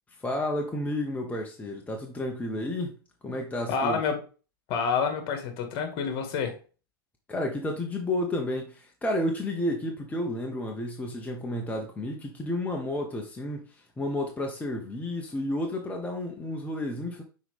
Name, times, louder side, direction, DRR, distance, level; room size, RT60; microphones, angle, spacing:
voice 1, 0.1-2.9 3.2-4.0 7.3-17.2, left 1 dB, 10° left, 1.0 m, -31 dB
voice 2, 3.7-4.2 4.7-6.5, left 5 dB, 45° left, 1.9 m, -28 dB
6.0 x 4.4 x 3.6 m
hypercardioid pair, 100°, 12 cm